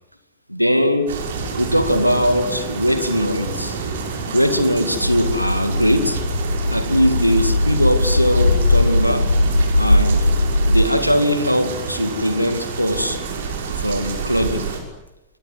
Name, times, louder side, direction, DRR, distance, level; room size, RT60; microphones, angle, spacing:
voice 1, 0.5-1.1 1.6-3.8 4.3-6.2 6.7-9.3 9.8-10.3 10.7-13.2 13.8-14.7, equal, 90° right, 9 dB, 2.3 m, -20 dB
sound 1, 1.1-14.8, right 5 dB, 60° right, 5.7 m, -29 dB
sound 2, 5.0-10.8, left 1 dB, 85° left, 1.1 m, -19 dB
26.0 x 22.5 x 9.5 m, 0.96 s
figure-of-eight pair, 90°, 0 cm